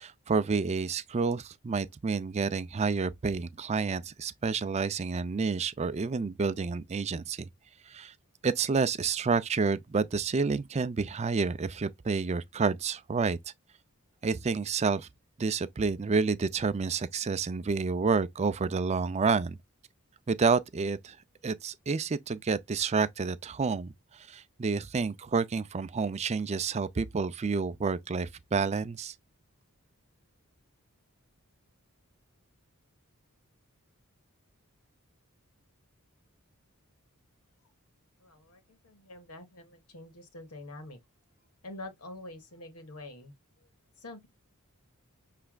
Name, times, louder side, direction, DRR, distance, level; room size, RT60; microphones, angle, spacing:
voice 1, 0.0-7.5 7.9-8.1 8.4-13.4 14.2-15.1 15.4-19.6 20.3-21.2 21.4-29.1, right 4 dB, 30° right, 0.4 m, -29 dB
voice 2, 38.2-41.0 41.6-43.7 44.0-44.3, left 2 dB, 85° left, 1.3 m, -46 dB
6.0 x 3.3 x 2.3 m
head